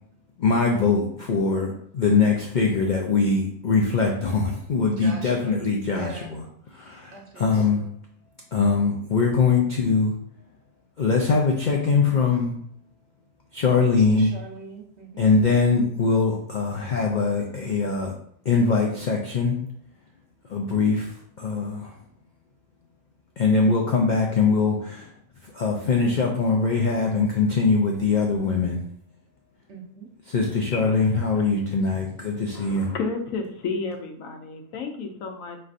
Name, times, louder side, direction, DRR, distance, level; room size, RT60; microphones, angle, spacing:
voice 1, 0.4-6.4 6.7-7.8 8.5-10.1 11.0-12.5 13.5-14.3 15.2-18.1 18.5-19.6 20.5-21.9 23.4-25.1 25.4-28.8 30.3-32.9, left 4 dB, 60° left, 0 dB, 0.5 m, -22 dB
voice 2, 5.0-5.6 5.9-6.3 7.1-7.9 13.9-15.3 29.7-30.1, right 3 dB, 55° right, 0 dB, 1.1 m, -41 dB
voice 3, 32.5-35.6, left 4 dB, 80° left, 4 dB, 1.1 m, -32 dB
5.3 x 3.2 x 2.5 m, 0.64 s
omnidirectional pair, 1.4 m